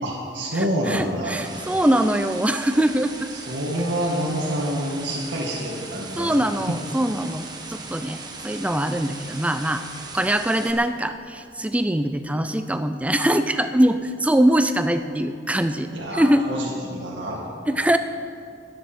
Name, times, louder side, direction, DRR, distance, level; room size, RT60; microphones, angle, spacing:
voice 1, 0.0-1.4 3.5-6.4 15.9-17.4, right 1 dB, 85° right, -4 dB, 2.1 m, -27 dB
voice 2, 0.5-3.3 6.2-9.8 10.1-16.4 17.7-18.0, right 1 dB, 10° right, 9 dB, 0.4 m, -22 dB
sound 1, 0.9-10.7, right 3 dB, 25° right, 1.3 m, -39 dB
23.0 x 10.5 x 4.5 m, 2.3 s
head